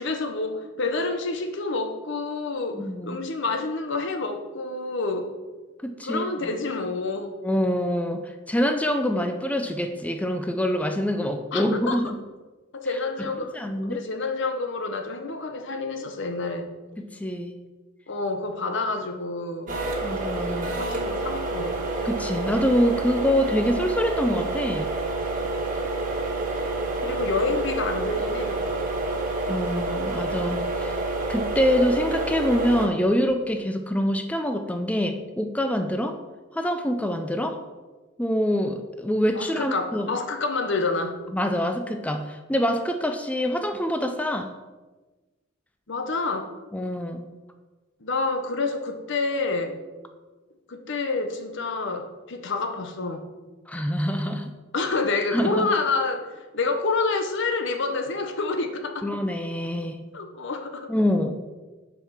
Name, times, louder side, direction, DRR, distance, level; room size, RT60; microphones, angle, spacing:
voice 1, 0.0-5.3 6.0-7.3 11.5-12.0 12.7-13.6 13.8-16.7 18.1-19.8 20.9-21.8 27.0-28.6 39.3-41.2 45.9-46.5 48.0-49.8 50.7-53.3 54.7-59.1 60.1-60.9, left 3 dB, 65° left, 6 dB, 0.8 m, -28 dB
voice 2, 2.7-3.2 5.8-6.2 7.4-12.1 13.2-13.3 13.5-14.0 17.0-17.5 20.0-20.7 22.0-24.9 29.5-31.0 31.3-36.2 36.5-37.6 38.2-40.1 41.3-44.5 46.7-47.2 53.7-54.5 55.3-55.7 59.0-60.0 60.9-61.5, equal, 5° left, 6 dB, 0.4 m, -25 dB
sound 1, 19.7-32.9, right 2 dB, 40° right, 1.4 m, -28 dB
6.5 x 4.8 x 5.7 m, 1.2 s
head